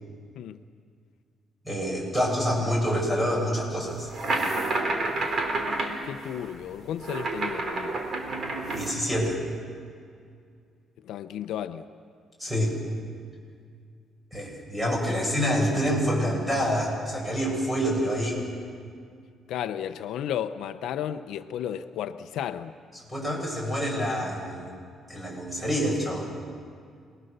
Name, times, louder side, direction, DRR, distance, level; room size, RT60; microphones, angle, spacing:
voice 1, 1.6-4.1 8.7-9.4 12.4-12.7 14.3-18.4 23.1-24.7 25.1-26.3, equal, 10° right, -2 dB, 7.7 m, -27 dB
sound 1, 4.0-8.9, right 2 dB, 45° right, 3.4 m, -29 dB
voice 2, 6.0-8.0 11.0-11.9 15.1-15.3 19.5-22.7, left 10 dB, 80° left, 10 dB, 0.7 m, -33 dB
27.5 x 20.5 x 6.8 m, 2.2 s
cardioid pair, 125°, 0 cm